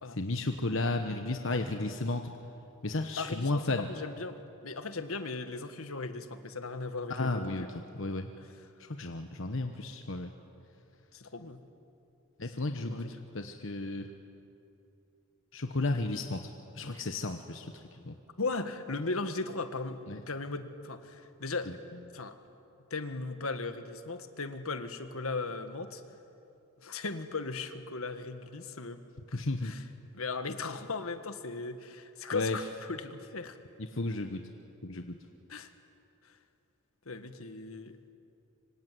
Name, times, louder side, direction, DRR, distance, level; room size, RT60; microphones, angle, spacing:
voice 1, 0.1-2.4 2.8-3.9 7.1-8.3 8.8-10.3 12.4-14.1 15.5-18.2 20.1-20.2 29.3-29.7 32.3-32.6 33.8-34.5 34.8-35.2, left 2 dB, 60° left, 6 dB, 1.2 m, -33 dB
voice 2, 3.2-3.6 3.9-7.7 11.1-11.6 12.7-13.2 18.4-20.0 20.3-21.7 22.1-22.3 22.9-26.0 26.8-29.0 29.3-29.8 30.1-33.6 35.5-35.7 37.1-38.2, left 3 dB, 80° left, 9 dB, 1.7 m, -37 dB
25.0 x 25.0 x 9.4 m, 2.7 s
head